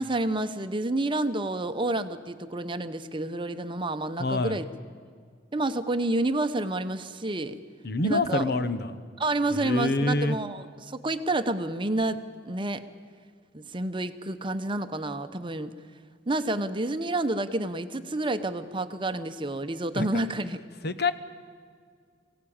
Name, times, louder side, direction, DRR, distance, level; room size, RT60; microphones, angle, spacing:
voice 1, 0.0-4.6 5.5-7.6 8.0-8.4 9.2-12.2 12.4-12.8 13.5-15.7 16.3-20.6, right 2 dB, 25° right, 10 dB, 0.8 m, -29 dB
voice 2, 4.2-4.6 7.8-9.0 9.5-10.4 20.0-20.1 20.8-21.1, left 2 dB, 60° left, 11 dB, 1.0 m, -26 dB
23.0 x 17.0 x 8.7 m, 2.1 s
head